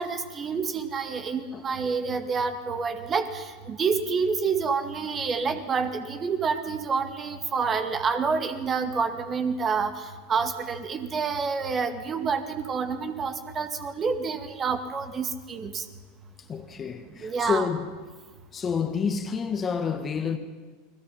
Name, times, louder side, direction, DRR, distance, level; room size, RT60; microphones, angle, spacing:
voice 1, 0.0-9.9 10.3-15.8 17.2-17.7, right 5 dB, 25° right, 2.1 m, -28 dB
voice 2, 16.5-18.0 18.5-20.4, left 6 dB, 25° left, 1.8 m, -29 dB
30.0 x 21.5 x 5.7 m
figure-of-eight pair, 80°, 0 cm